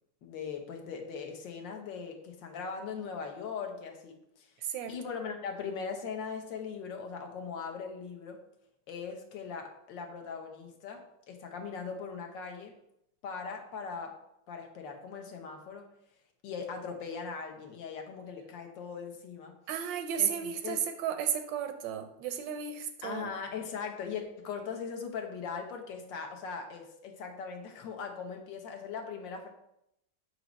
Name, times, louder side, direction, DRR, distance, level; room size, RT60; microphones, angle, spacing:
voice 1, 0.2-4.5 4.9-8.4 8.9-12.8 13.2-14.2 14.5-15.9 16.4-19.6 20.2-20.8 23.0-29.5, left 5 dB, 75° left, 4 dB, 1.6 m, -40 dB
voice 2, 4.6-5.0 19.7-23.3, right 8 dB, 80° right, 8 dB, 1.3 m, -33 dB
7.4 x 3.1 x 5.1 m, 0.80 s
omnidirectional pair, 2.0 m